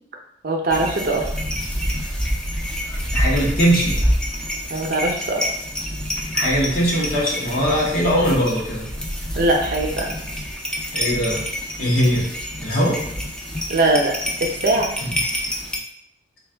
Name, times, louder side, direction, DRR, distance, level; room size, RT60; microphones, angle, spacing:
voice 1, 0.4-1.3 4.7-5.5 9.3-10.2 13.7-14.9, right 2 dB, 50° right, 1 dB, 0.6 m, -21 dB
sound 1, 0.7-15.8, equal, 5° left, 0.4 m, -27 dB
voice 2, 3.1-4.0 6.3-8.9 10.9-11.4 11.8-12.3 12.6-13.0 15.0-15.1, equal, 55° left, -5 dB, 0.8 m, -20 dB
3.5 x 2.3 x 3.3 m, 0.74 s
head